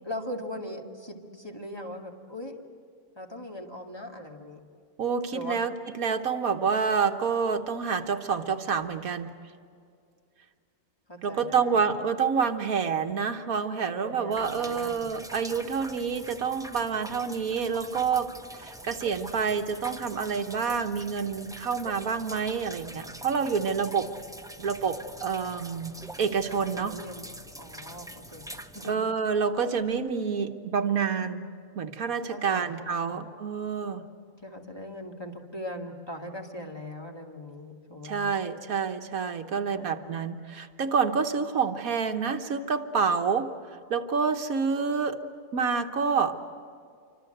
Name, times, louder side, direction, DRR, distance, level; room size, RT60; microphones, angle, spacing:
voice 1, 0.0-2.6 3.1-4.6 5.3-5.6 11.1-11.9 13.9-15.1 23.9-24.1 26.5-27.3 27.6-28.4 28.7-29.0 32.3-33.2 34.4-38.3 39.5-40.0, left 1 dB, 15° left, 1 dB, 2.2 m, -40 dB
voice 2, 5.0-9.3 11.2-24.1 24.6-27.0 28.9-31.4 31.7-34.1 38.0-45.2 45.5-46.4, right 6 dB, 75° right, 6 dB, 1.6 m, -28 dB
sound 1, 14.3-29.0, right 1 dB, 5° right, 0.8 m, -44 dB
27.5 x 25.0 x 8.0 m, 2.3 s
omnidirectional pair, 1.5 m